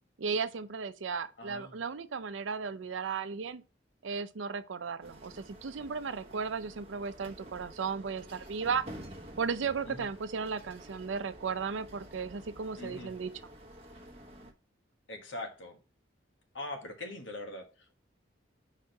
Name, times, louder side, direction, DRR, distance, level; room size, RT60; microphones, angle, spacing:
voice 1, 0.2-3.6 4.0-8.9 9.4-13.3, right 5 dB, 85° right, 0.5 m, -35 dB
voice 2, 1.4-1.8 9.8-10.1 12.8-13.1 15.1-15.8 16.5-17.9, left 2 dB, 80° left, 1.4 m, -42 dB
sound 1, 5.0-14.5, right 1 dB, 30° right, 1.0 m, -50 dB
4.9 x 4.3 x 4.6 m
head